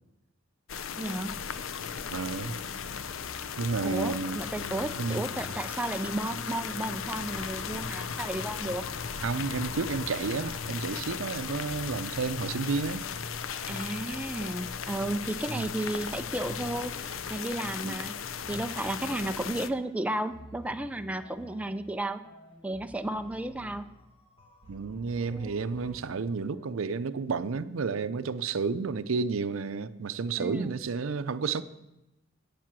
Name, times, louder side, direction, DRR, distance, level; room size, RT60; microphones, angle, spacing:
sound 1, 0.7-19.7, left 6 dB, 80° left, 0.6 m, -36 dB
voice 1, 1.0-1.4 3.8-8.8 13.7-18.1 18.5-22.2 22.6-23.9 25.3-25.6 30.4-30.7, right 1 dB, 5° right, 0.4 m, -33 dB
voice 2, 2.1-2.6 3.6-4.4 5.0-5.2 9.2-13.0 15.5-15.7 17.8-18.0 24.7-31.6, right 4 dB, 90° right, 0.5 m, -31 dB
sound 2, 9.7-27.0, left 1 dB, 30° left, 1.5 m, -52 dB
9.1 x 7.6 x 7.4 m
head